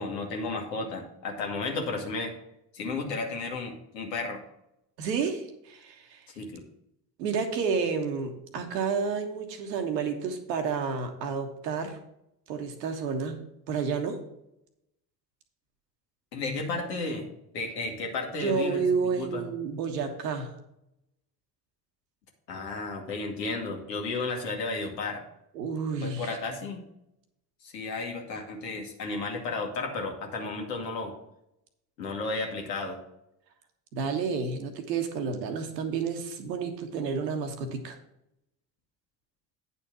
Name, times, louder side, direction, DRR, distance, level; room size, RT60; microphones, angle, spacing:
voice 1, 0.0-2.3 2.7-4.4 6.3-6.6 16.3-17.3 17.5-18.8 19.2-19.4 22.5-25.2 26.0-26.8 27.6-31.1 32.0-33.0, left 3 dB, 80° left, 2 dB, 1.6 m, -33 dB
voice 2, 5.0-6.2 7.2-12.0 12.5-13.4 13.7-14.2 18.3-20.5 25.5-26.3 33.9-38.0, right 5 dB, 80° right, 5 dB, 1.2 m, -30 dB
9.2 x 4.2 x 6.1 m, 0.82 s
hypercardioid pair, 55°, 49 cm